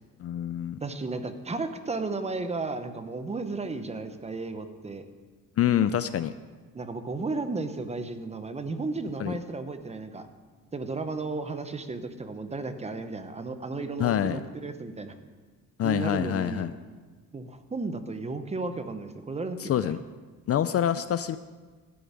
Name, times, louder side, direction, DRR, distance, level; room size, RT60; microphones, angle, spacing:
voice 1, 0.2-0.8 5.6-6.3 9.2-9.3 14.0-14.4 15.8-16.7 19.6-20.0 20.5-21.4, left 10 dB, 45° left, 12 dB, 0.4 m, -26 dB
voice 2, 0.8-5.1 6.7-10.3 10.7-15.1 15.8-16.7 17.3-19.9, right 3 dB, 20° right, 9 dB, 0.8 m, -34 dB
12.5 x 7.0 x 9.6 m, 1.4 s
cardioid pair, 155°, 35 cm